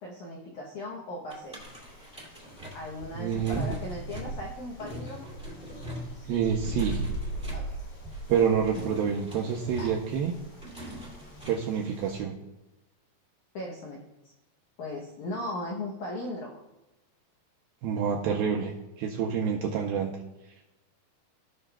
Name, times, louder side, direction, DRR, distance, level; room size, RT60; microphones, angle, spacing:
voice 1, 0.0-1.6 2.7-5.3 7.5-7.8 8.3-8.6 9.8-9.9 13.5-14.0 14.2-14.3 14.8-16.6, left 1 dB, 80° left, -1 dB, 1.7 m, -38 dB
sound 1, 1.3-11.7, equal, 5° right, 0.5 m, -42 dB
sound 2, 1.6-12.2, right 2 dB, 50° left, 3.7 m, -40 dB
voice 2, 3.2-3.7 6.3-7.0 8.3-10.3 11.5-12.3 17.8-20.1, right 7 dB, 85° right, 1 dB, 2.1 m, -27 dB
16.5 x 5.7 x 2.3 m, 1.0 s
omnidirectional pair, 4.9 m